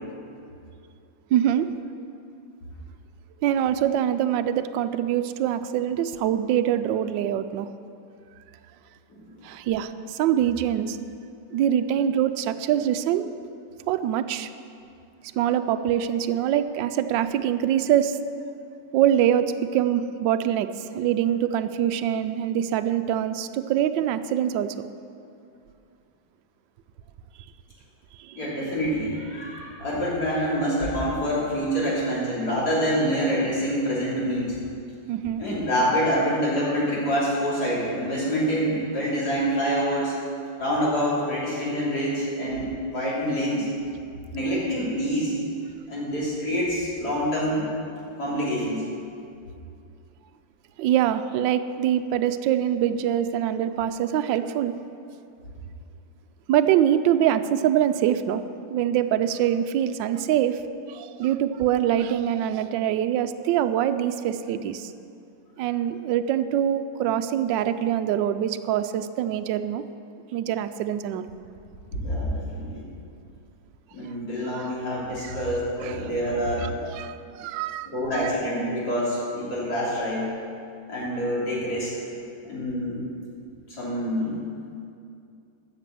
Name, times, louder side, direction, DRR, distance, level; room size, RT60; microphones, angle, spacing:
voice 1, 1.3-1.7 3.4-7.7 9.4-11.0 11.5-13.3 13.9-14.5 15.4-18.2 18.9-20.7 20.9-24.7 28.2-28.4 35.1-35.4 50.8-54.7 56.5-58.4 58.7-60.6 60.9-64.9 65.6-69.8 70.3-71.2 74.5-74.6 75.2-75.4 75.8-76.0 76.6-78.2, right 10 dB, 75° right, 10 dB, 1.2 m, -24 dB
voice 2, 28.4-34.6 35.4-40.2 40.6-43.7 44.3-45.3 45.9-47.7 48.2-48.8 72.0-72.9 73.9-76.8 77.9-80.3 80.9-81.9 82.4-83.1 83.7-84.4, equal, 55° left, -6 dB, 3.6 m, -26 dB
13.0 x 6.7 x 7.5 m, 2.5 s
omnidirectional pair, 2.1 m